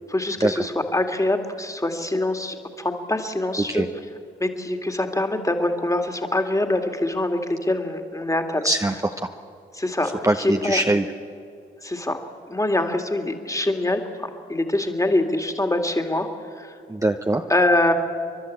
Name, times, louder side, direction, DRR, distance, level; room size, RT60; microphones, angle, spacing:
voice 1, 0.1-3.8 4.4-8.6 9.7-10.1 10.4-10.8 11.8-12.2 12.5-16.3 16.6-16.8 17.5-17.9, left 1 dB, 15° left, 5 dB, 2.2 m, -24 dB
voice 2, 8.6-9.3 10.0-11.0 16.9-17.4, right 2 dB, 15° right, 4 dB, 0.9 m, -23 dB
29.5 x 11.5 x 8.5 m, 2.4 s
supercardioid pair, 45°, 20 cm